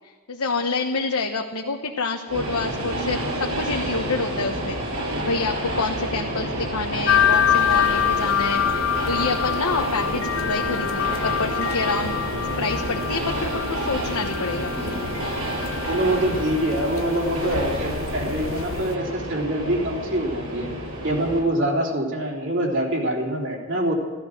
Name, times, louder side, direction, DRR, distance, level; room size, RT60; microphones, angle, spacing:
voice 1, 0.3-12.2 12.6-15.1, left 3 dB, 85° left, 2 dB, 1.2 m, -28 dB
Train, 2.3-21.4, right 1 dB, 75° right, 6.9 m, -29 dB
sound 1, 7.1-19.0, left 9 dB, 60° left, 0.4 m, -26 dB
voice 2, 15.9-20.7 21.0-23.9, right 1 dB, 55° right, -3 dB, 3.7 m, -25 dB
15.0 x 14.0 x 6.6 m, 1.5 s
head